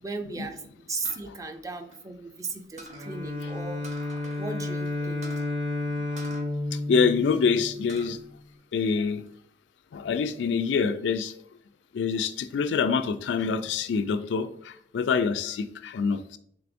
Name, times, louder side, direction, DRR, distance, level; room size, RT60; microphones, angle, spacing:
voice 1, 0.0-4.1 4.4-5.4, right 3 dB, 20° right, 6 dB, 0.4 m, -36 dB
sound 1, 1.0-2.4 2.8-3.1 3.8-4.5 4.7-4.8 5.2-5.5 6.2-7.3 7.7-8.2 8.6-9.3, right 1 dB, 40° right, 0.8 m, -47 dB
Bowed string instrument, 2.9-8.1, left 2 dB, 80° right, 1.1 m, -32 dB
voice 2, 6.7-8.2 8.7-9.2 9.9-11.3 11.9-16.2, left 5 dB, 85° left, 11 dB, 0.3 m, -26 dB
4.5 x 3.3 x 2.5 m, 0.65 s
head